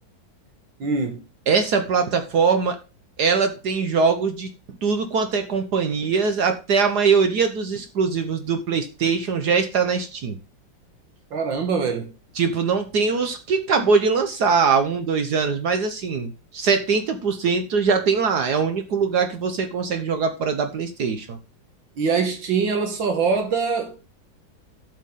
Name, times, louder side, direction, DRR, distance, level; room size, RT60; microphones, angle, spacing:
voice 1, 0.8-1.2 11.3-12.1 22.0-24.0, right 5 dB, 80° right, 2.2 m, -23 dB
voice 2, 1.5-2.8 3.2-4.5 4.8-10.4 12.4-21.4, right 5 dB, 60° right, 1.5 m, -22 dB
12.0 x 6.4 x 3.8 m
omnidirectional pair, 2.1 m